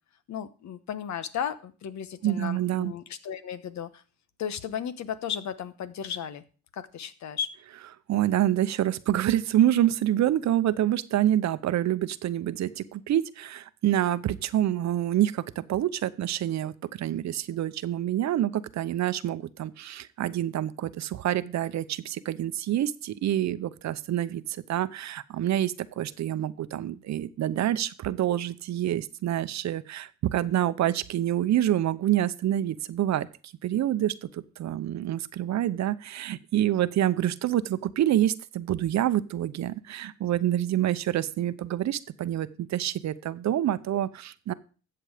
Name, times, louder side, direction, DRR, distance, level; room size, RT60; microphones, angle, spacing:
voice 1, 0.3-4.0 4.4-6.4 6.7-7.6, left 8 dB, 65° left, 13 dB, 1.1 m, -35 dB
voice 2, 2.2-2.9 8.1-33.3 33.6-44.5, right 12 dB, 65° right, 15 dB, 0.8 m, -27 dB
14.0 x 7.9 x 5.0 m, 0.37 s
cardioid pair, 90°, 30 cm